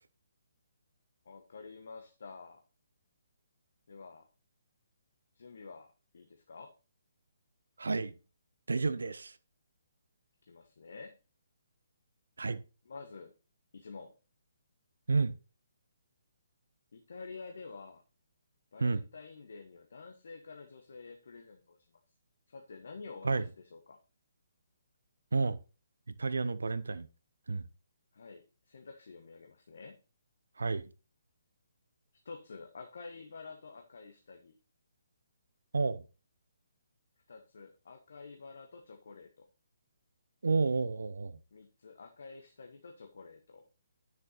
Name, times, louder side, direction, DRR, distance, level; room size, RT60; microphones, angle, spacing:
voice 1, 1.2-2.6 3.9-4.3 5.3-6.7 10.4-11.2 12.8-13.3 13.7-14.1 16.9-18.0 18.7-21.8 22.5-24.0 28.1-30.0 32.2-34.6 37.3-39.4 41.5-43.6, left 4 dB, 65° left, 1.4 m, -49 dB
voice 2, 7.8-8.1 8.7-9.3 12.4-12.6 15.1-15.3 18.8-19.0 23.2-23.4 25.3-25.6 26.2-27.1 27.5-27.6 30.6-30.9 35.7-36.0 40.4-41.4, right 4 dB, 75° right, 0.9 m, -30 dB
9.9 x 6.8 x 4.1 m
figure-of-eight pair, 140°, 0 cm